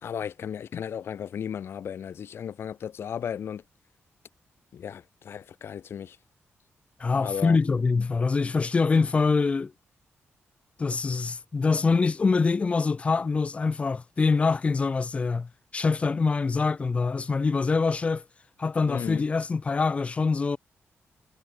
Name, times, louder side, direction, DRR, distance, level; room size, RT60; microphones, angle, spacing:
voice 1, 0.0-3.6 4.7-6.2 7.2-7.6 18.9-19.2, left 8 dB, 60° left, 3.4 m, -35 dB
voice 2, 7.0-9.7 10.8-18.2 18.6-20.6, left 4 dB, 30° left, 2.9 m, -24 dB
wide cardioid pair, 170°, 5 cm